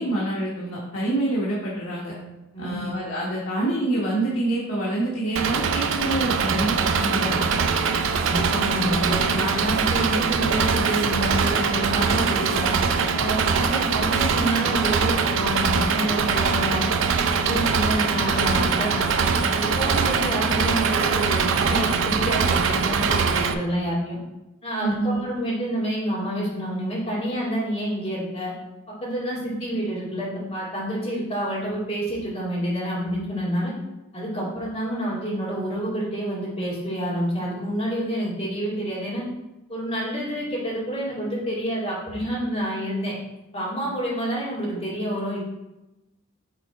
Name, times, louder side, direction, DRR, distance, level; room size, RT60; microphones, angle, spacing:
voice 1, 0.0-2.1 2.6-7.4 24.8-25.2, right 1 dB, 80° left, -6 dB, 1.2 m, -26 dB
Engine, 5.4-23.5, right 5 dB, 60° right, 0.4 m, -22 dB
voice 2, 8.1-12.7 13.1-16.9 17.3-24.2 24.6-28.5 29.0-33.7 34.1-39.2 39.7-43.1 43.5-45.4, equal, 25° left, -7 dB, 2.1 m, -28 dB
6.2 x 3.8 x 4.1 m, 0.98 s
head